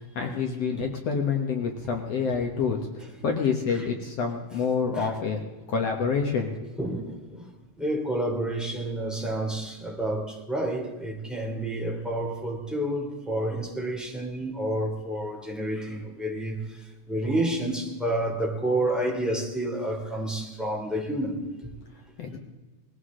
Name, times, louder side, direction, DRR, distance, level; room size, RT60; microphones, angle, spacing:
voice 1, 0.0-5.4 5.7-6.7 22.2-22.4, left 5 dB, 60° left, 2.0 m, -27 dB
voice 2, 6.8-16.8 17.1-21.7, right 1 dB, ahead, 2.3 m, -29 dB
20.5 x 16.0 x 3.8 m
omnidirectional pair, 3.7 m